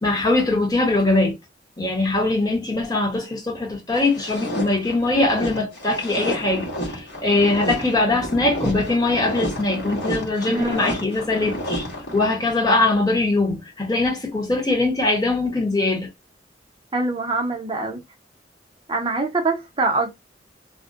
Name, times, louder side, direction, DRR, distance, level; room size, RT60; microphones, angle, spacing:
voice 1, 0.0-1.3 1.8-11.9 12.1-16.1, left 2 dB, 20° left, 0.9 m, -21 dB
sound 1, 4.0-12.6, equal, 75° left, 1.2 m, -30 dB
voice 2, 10.5-10.8 16.9-18.0 18.9-20.1, right 3 dB, 30° right, 0.6 m, -24 dB
2.5 x 2.1 x 2.4 m
head